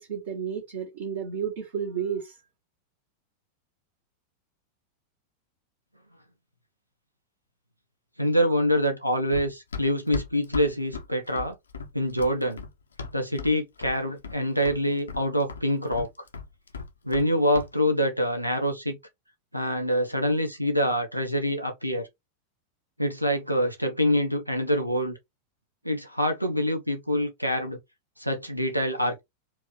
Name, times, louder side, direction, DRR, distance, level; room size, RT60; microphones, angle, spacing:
voice 1, 0.0-2.4, right 7 dB, 60° right, 1.7 m, -32 dB
voice 2, 8.2-11.5 11.9-12.6 13.1-16.1 17.0-19.0 19.5-22.1 23.0-25.2 25.8-27.8 28.2-29.2, equal, 90° right, 0.8 m, -25 dB
Run, 9.3-13.6 13.8-14.4 14.7-17.3 17.5-17.7, left 5 dB, 75° left, 0.7 m, -37 dB
4.5 x 2.7 x 3.1 m
figure-of-eight pair, 90°, 0 cm